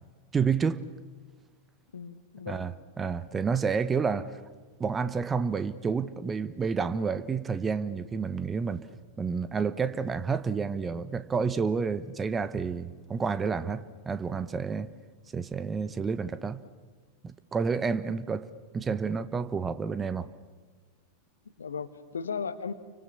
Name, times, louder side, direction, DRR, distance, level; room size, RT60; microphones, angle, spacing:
voice 1, 0.3-0.8 2.5-4.4 4.8-8.9 9.2-14.9 15.3-16.6 17.2-18.5 18.7-20.3, right 5 dB, 20° right, 1.1 m, -30 dB
voice 2, 1.9-2.7 21.6-22.7, left 6 dB, 70° left, 1.5 m, -36 dB
29.5 x 24.5 x 7.1 m
figure-of-eight pair, 90°, 0 cm